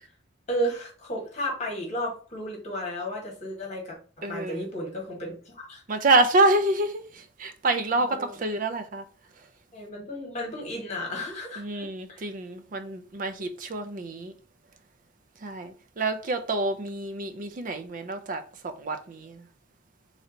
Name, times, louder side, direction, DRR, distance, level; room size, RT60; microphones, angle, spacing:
voice 1, 0.5-4.0 4.3-5.8 7.9-8.4 9.7-12.3, equal, 40° left, 1.4 m, -33 dB
voice 2, 4.2-4.7 5.9-9.0 11.6-14.3 15.4-19.4, right 2 dB, 45° right, 0.5 m, -27 dB
3.2 x 2.7 x 3.8 m
head